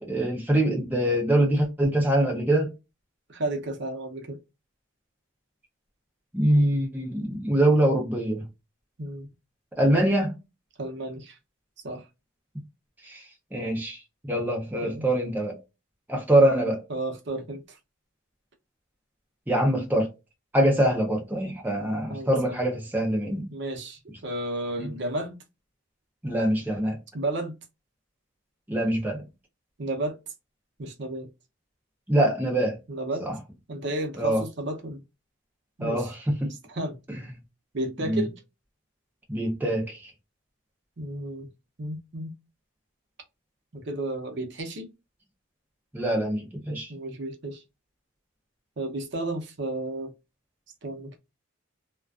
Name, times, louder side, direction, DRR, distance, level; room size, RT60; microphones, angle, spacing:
voice 1, 0.0-2.7 6.3-8.4 9.8-10.3 13.0-14.0 14.3-15.6 16.1-16.8 19.5-20.1 20.5-23.5 24.8-24.9 26.2-27.0 28.7-29.2 32.1-32.8 33.2-33.4 34.2-34.4 35.8-36.5 37.1-37.2 38.0-38.2 39.3-40.1 45.9-46.9, right 1 dB, 10° right, 0.5 m, -24 dB
voice 2, 3.3-4.4 9.0-9.3 10.8-11.4 11.8-12.1 14.8-15.1 16.9-17.8 22.1-22.6 23.5-25.3 27.1-27.6 29.8-30.2 30.8-31.3 32.9-33.3 33.7-35.0 35.8-36.1 36.7-37.0 37.7-38.4 41.0-41.5 41.8-42.3 43.7-44.9 46.9-47.6 48.8-50.1 50.8-51.2, right 2 dB, 55° right, 0.6 m, -32 dB
2.3 x 2.2 x 2.3 m
head